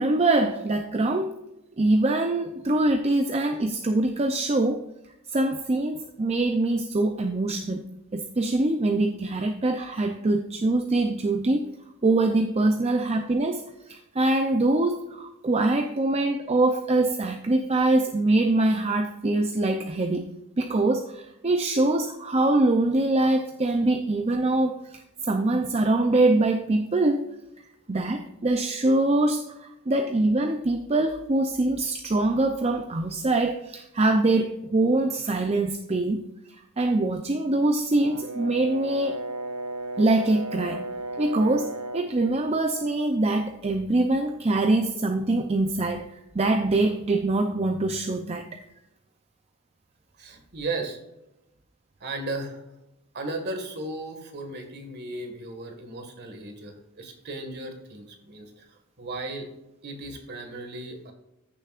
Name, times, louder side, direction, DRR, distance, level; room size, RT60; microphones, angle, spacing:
voice 1, 0.0-1.4 1.8-4.9 5.3-11.7 12.0-20.3 20.6-27.3 27.9-39.2 40.0-40.8 41.2-48.6, right 2 dB, 30° right, 5 dB, 0.5 m, -24 dB
Brass instrument, 37.9-42.2, right 1 dB, 70° right, 0.8 m, -34 dB
voice 2, 50.2-51.0 52.0-52.6 53.1-59.5 59.8-61.1, right 2 dB, 50° right, 5 dB, 1.8 m, -35 dB
15.0 x 6.9 x 2.5 m, 0.90 s
head